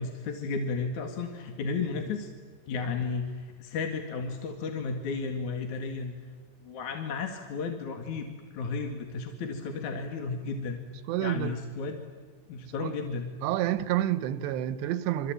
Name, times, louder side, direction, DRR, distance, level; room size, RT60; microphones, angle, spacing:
voice 1, 0.0-2.3 2.7-6.2 6.6-10.8 11.2-12.0 12.5-13.3, left 4 dB, 55° left, 3.0 m, -33 dB
voice 2, 11.1-11.5 12.6-12.9 13.4-15.3, right 13 dB, 90° right, 3.1 m, -29 dB
27.5 x 24.0 x 8.9 m
omnidirectional pair, 4.8 m